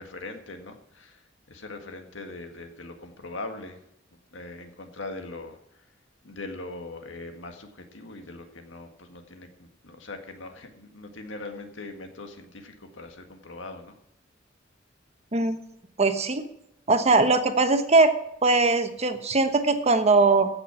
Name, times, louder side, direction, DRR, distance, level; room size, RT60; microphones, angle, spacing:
voice 1, 0.0-3.8 4.3-5.9 6.2-14.0, left 2 dB, 80° left, 5 dB, 1.8 m, -41 dB
voice 2, 16.0-16.4 16.9-18.1 18.4-20.5, right 3 dB, 35° right, 8 dB, 1.1 m, -20 dB
15.5 x 6.2 x 5.9 m, 0.78 s
head